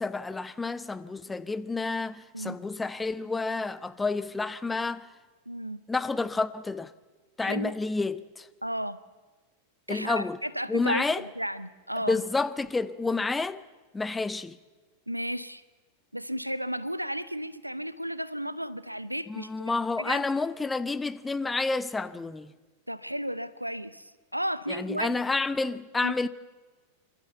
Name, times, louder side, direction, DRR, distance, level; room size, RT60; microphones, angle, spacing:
voice 1, 0.0-5.1 5.9-6.9 7.4-8.5 9.9-10.4 10.7-11.2 12.1-13.6 13.9-14.6 19.3-22.5 24.7-26.3, left 3 dB, 10° left, 0.7 m, -29 dB
voice 2, 5.5-5.8 7.4-7.7 8.6-9.0 9.9-12.2 15.1-15.6 16.1-19.7 20.0-20.2 22.9-25.2 26.0-26.1, equal, 90° right, 0.7 m, -33 dB
27.5 x 13.0 x 8.1 m
figure-of-eight pair, 90°, 0 cm